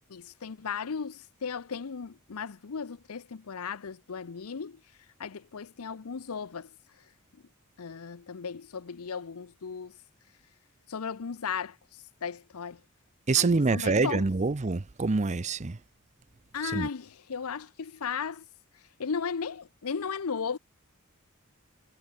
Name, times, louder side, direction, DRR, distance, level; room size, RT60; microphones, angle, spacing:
voice 1, 0.1-4.8 5.2-6.7 7.8-9.9 10.9-11.8 12.2-12.8 13.3-14.3 16.5-18.4 19.0-20.6, left 6 dB, 75° left, 0.6 m, -36 dB
voice 2, 13.3-15.8 16.7-16.9, right 3 dB, 30° right, 0.6 m, -26 dB
head